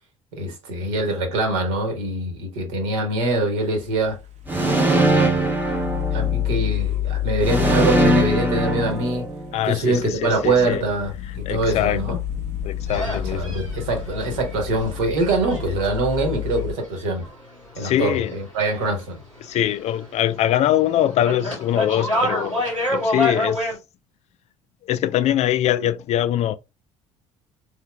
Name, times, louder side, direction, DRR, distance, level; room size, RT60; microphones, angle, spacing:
voice 1, 0.3-4.2 4.7-5.6 6.1-9.3 9.6-12.2 13.0-17.3 17.8-19.2, right 2 dB, 70° right, 1.3 m, -24 dB
sound 1, 3.8-16.7, left 13 dB, 45° right, 0.8 m, -29 dB
sound 2, 4.5-6.7 7.4-9.6, right 1 dB, 10° right, 1.0 m, -21 dB
voice 2, 9.5-10.8 11.4-12.2 12.6-13.6 17.8-18.3 19.4-22.6 22.9-23.6 24.9-26.5, left 12 dB, 45° left, 0.4 m, -23 dB
sound 3, 12.9-18.7 18.9-20.2 20.5-23.8, left 1 dB, 90° right, 1.4 m, -28 dB
4.1 x 3.6 x 2.2 m
figure-of-eight pair, 55°, 16 cm